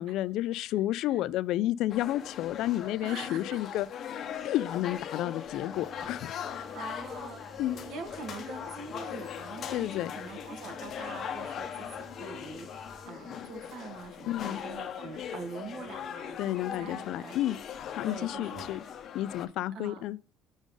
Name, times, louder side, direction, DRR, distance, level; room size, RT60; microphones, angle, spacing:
voice 1, 0.0-3.9 4.4-6.6 7.6-7.8 9.7-10.1 14.3-14.6 16.4-17.6 17.9-18.8 19.1-20.2, left 14 dB, 65° left, 0.3 m, -31 dB
sound 1, 1.9-19.5, left 8 dB, 40° left, 0.7 m, -40 dB
voice 2, 3.0-3.6 6.7-9.9 10.1-17.4 18.0-18.8 19.7-20.1, right 4 dB, 55° right, 1.2 m, -44 dB
sound 2, 5.7-13.1, right 2 dB, 15° right, 1.0 m, -52 dB
6.1 x 3.8 x 5.2 m
cardioid pair, 175°, 0 cm